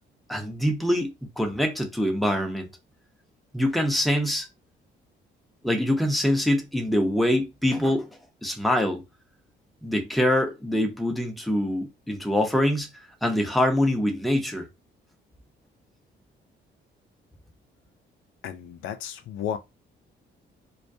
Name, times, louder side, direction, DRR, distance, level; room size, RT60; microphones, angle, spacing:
voice 1, 0.3-2.7 3.5-4.5 5.6-8.1 8.4-9.0 9.8-12.9 13.2-14.7, left 1 dB, ahead, 0.6 m, -24 dB
voice 2, 18.4-19.6, left 9 dB, 85° left, 0.4 m, -33 dB
2.3 x 2.1 x 2.6 m
cardioid pair, 90°, 20 cm